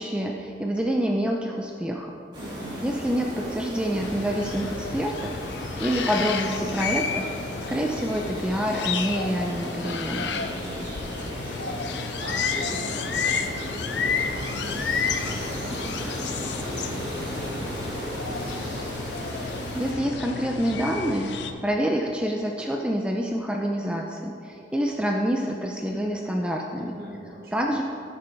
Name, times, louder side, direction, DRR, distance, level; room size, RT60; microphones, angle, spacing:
voice 1, 0.0-2.1 2.8-5.4 5.8-7.3 7.7-10.3 19.4-19.5 19.7-26.9 27.5-27.8, equal, 5° right, 0 dB, 0.4 m, -27 dB
sound 1, 2.3-19.9, equal, 25° right, 2.2 m, -35 dB
voice 2, 2.4-2.8 10.3-18.8 26.7-27.7, right 1 dB, 55° right, -5 dB, 2.0 m, -41 dB
sound 2, 4.0-21.5, left 5 dB, 80° left, 0.6 m, -31 dB
13.0 x 6.8 x 3.4 m, 2.7 s
head